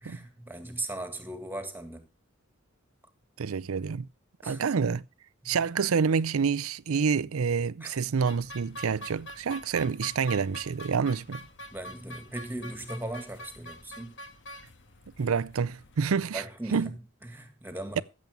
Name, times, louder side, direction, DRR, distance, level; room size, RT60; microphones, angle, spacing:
voice 1, 0.0-2.1 4.4-4.6 5.4-5.6 7.8-8.0 11.7-14.2 16.3-18.0, right 1 dB, 10° right, 1.9 m, -38 dB
voice 2, 3.4-4.1 4.5-5.0 5.5-11.4 15.2-16.4 16.7-16.9 18.0-18.1, right 6 dB, 80° right, 0.5 m, -28 dB
sound 1, 8.3-16.2, equal, 60° left, 1.6 m, -45 dB
15.0 x 7.5 x 5.2 m
head